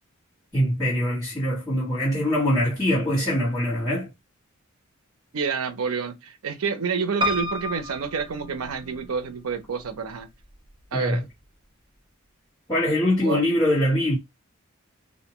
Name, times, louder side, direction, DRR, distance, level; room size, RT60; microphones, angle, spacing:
voice 1, 0.5-4.1 10.9-11.2 12.7-14.2, left 1 dB, 20° left, 1.2 m, -23 dB
voice 2, 5.3-10.3 10.9-11.2 13.2-13.4, right 5 dB, 85° right, 0.5 m, -28 dB
Piano, 7.2-9.2 9.8-10.5 10.8-10.9 11.1-11.2, left 1 dB, 20° right, 0.4 m, -30 dB
2.6 x 2.2 x 2.8 m
head